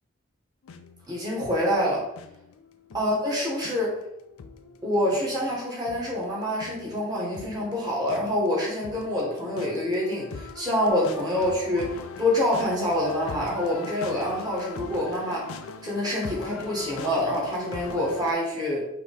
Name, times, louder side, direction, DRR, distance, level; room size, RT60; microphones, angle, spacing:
sound 1, 0.6-18.3, left 5 dB, 85° left, 0.4 m, -42 dB
voice 1, 1.1-2.1 2.9-4.0 4.8-18.8, left 1 dB, 20° right, -5 dB, 1.3 m, -26 dB
4.9 x 2.9 x 3.5 m, 0.84 s
head